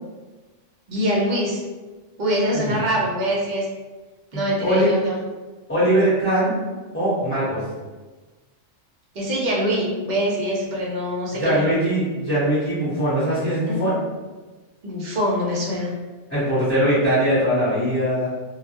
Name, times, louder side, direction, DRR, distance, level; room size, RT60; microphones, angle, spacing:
voice 1, 0.9-1.6 2.2-3.7 4.3-5.2 9.1-11.6 13.7-13.8 14.8-15.9, equal, 50° right, -4 dB, 0.6 m, -24 dB
voice 2, 4.3-4.9 5.7-6.5 6.9-7.6 11.3-13.9 16.3-18.3, equal, 10° left, -13 dB, 0.8 m, -21 dB
2.2 x 2.1 x 2.7 m, 1.3 s
omnidirectional pair, 1.3 m